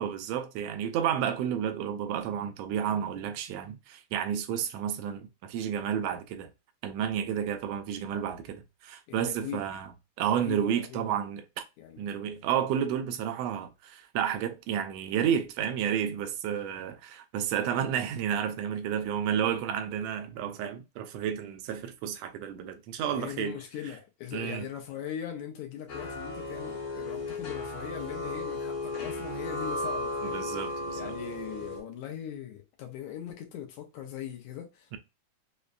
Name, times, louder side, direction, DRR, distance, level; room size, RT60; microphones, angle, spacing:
voice 1, 0.0-6.5 6.8-9.9 10.2-11.4 12.0-23.6 24.3-24.7 30.2-31.1 34.9-35.0, right 9 dB, 80° right, 1.5 m, -31 dB
voice 2, 8.1-8.5 9.1-9.6 10.2-11.2 11.8-12.4 23.1-30.5 30.9-35.0, left 10 dB, 80° left, 1.9 m, -40 dB
sound 1, 25.9-31.8, left 2 dB, 60° left, 1.3 m, -35 dB
5.2 x 2.1 x 2.4 m
omnidirectional pair, 3.4 m